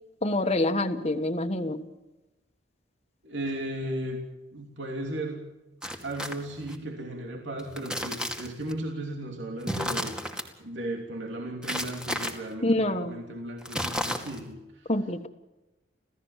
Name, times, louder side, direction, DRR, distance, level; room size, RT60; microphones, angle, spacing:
voice 1, 0.2-1.8 12.6-13.2 14.9-15.3, left 1 dB, 35° left, 6 dB, 1.5 m, -26 dB
voice 2, 3.2-4.2 4.5-5.4 6.0-10.2 10.6-14.9, right 1 dB, 75° right, 2 dB, 3.1 m, -35 dB
sound 1, 5.8-6.8 7.6-8.7 9.6-10.5 11.6-12.3 13.6-14.5, equal, 5° right, 2.3 m, -33 dB
27.5 x 16.5 x 7.4 m, 1.0 s
head